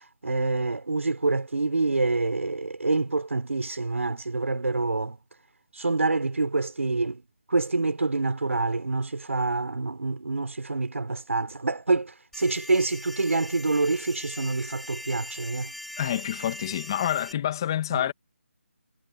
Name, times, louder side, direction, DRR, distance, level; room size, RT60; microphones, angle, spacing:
voice 1, 0.2-5.2 5.8-7.2 7.5-15.7 17.9-18.0, right 3 dB, 90° right, 3.9 m, -26 dB
sound 1, 12.3-17.3, left 1 dB, ahead, 2.6 m, -41 dB
voice 2, 16.0-18.1, left 11 dB, 20° left, 1.7 m, -27 dB
figure-of-eight pair, 175°, 7 cm